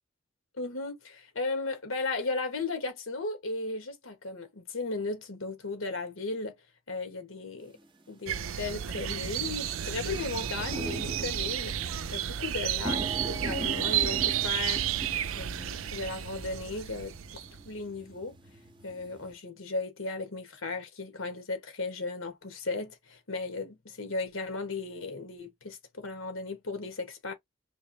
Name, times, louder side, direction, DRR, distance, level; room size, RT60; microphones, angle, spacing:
voice 1, 0.6-6.6 6.9-7.7 8.1-11.8 12.1-14.9 15.4-17.1 17.6-18.4 18.8-27.3, left 3 dB, 80° left, 1.5 m, -36 dB
sound 1, 7.8-7.9 8.6-8.9 9.3-9.4 9.6-19.3, right 2 dB, 25° right, 0.7 m, -41 dB
sound 2, 8.3-17.7, right 11 dB, 85° right, 0.5 m, -32 dB
3.4 x 3.1 x 2.8 m
head